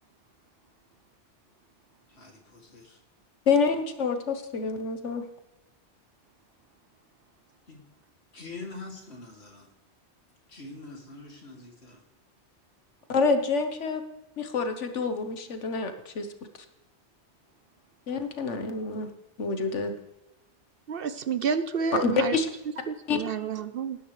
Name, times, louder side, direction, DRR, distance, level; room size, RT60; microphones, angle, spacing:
voice 1, 2.1-3.0 7.7-7.8 8.3-9.7 10.5-12.0, left 3 dB, 65° left, 1 dB, 2.9 m, -44 dB
voice 2, 3.5-5.2 13.1-14.0 14.4-16.3 18.1-19.1 19.4-19.9 22.0-22.5 23.1-23.2, left 4 dB, 90° left, 7 dB, 1.5 m, -27 dB
voice 3, 20.9-22.4 22.9-24.0, right 6 dB, 60° right, 13 dB, 0.8 m, -29 dB
19.0 x 10.0 x 3.2 m, 0.94 s
omnidirectional pair, 1.2 m